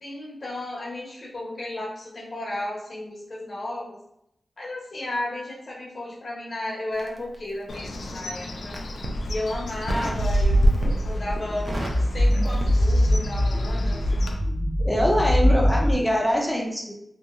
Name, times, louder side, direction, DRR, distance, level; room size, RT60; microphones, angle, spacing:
voice 1, 0.0-4.0 4.6-8.8 9.3-11.7 12.0-14.0, left 1 dB, 50° left, -3 dB, 0.9 m, -33 dB
Crackle, 6.9-8.1 8.6-9.2 9.9-10.3 10.6-11.1 11.4-13.3 13.6-13.8, right 1 dB, 40° right, 0.5 m, -33 dB
Bird, 7.7-14.3, equal, 80° left, 0.4 m, -27 dB
sound 1, 10.5-15.9, left 1 dB, 60° right, 1.1 m, -23 dB
voice 2, 14.8-16.9, equal, 5° left, -1 dB, 0.5 m, -23 dB
2.8 x 2.8 x 2.4 m, 0.78 s
wide cardioid pair, 105°, 0 cm